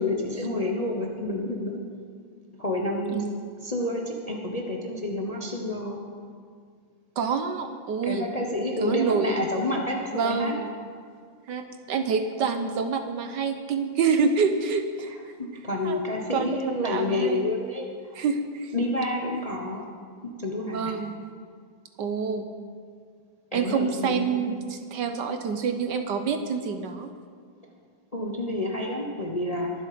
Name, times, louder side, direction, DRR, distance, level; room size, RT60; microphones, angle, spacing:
voice 1, 0.0-1.8 2.6-3.2 3.6-6.0 8.0-10.5 15.1-18.2 18.7-19.9 20.4-21.0 23.5-24.6 28.1-29.7, left 2 dB, 25° left, 1 dB, 0.8 m, -29 dB
voice 2, 7.2-8.3 8.8-9.4 10.1-10.7 11.5-15.3 15.8-16.0 16.3-17.4 18.1-18.7 20.7-21.1 22.0-22.5 23.5-27.1, right 5 dB, 65° right, 7 dB, 1.3 m, -27 dB
22.0 x 7.7 x 5.1 m, 2.1 s
omnidirectional pair, 2.2 m